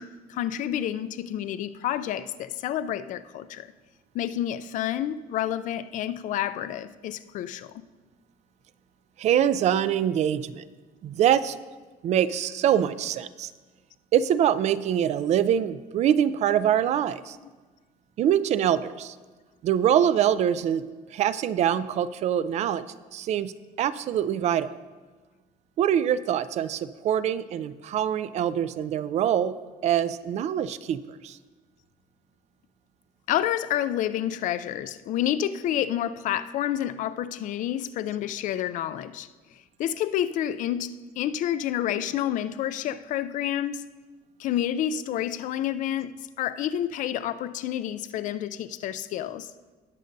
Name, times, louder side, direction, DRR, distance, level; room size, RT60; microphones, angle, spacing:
voice 1, 0.0-3.7 4.1-7.7 33.3-39.3 39.8-43.9 44.4-49.5, left 11 dB, 55° left, 0.4 m, -29 dB
voice 2, 9.2-10.6 11.0-11.6 12.0-13.5 14.1-17.4 18.2-19.1 19.6-20.8 21.1-23.5 23.8-24.7 25.8-29.6 29.8-31.4, right 10 dB, 45° right, 0.4 m, -24 dB
19.0 x 6.4 x 2.6 m
cardioid pair, 150°, 16 cm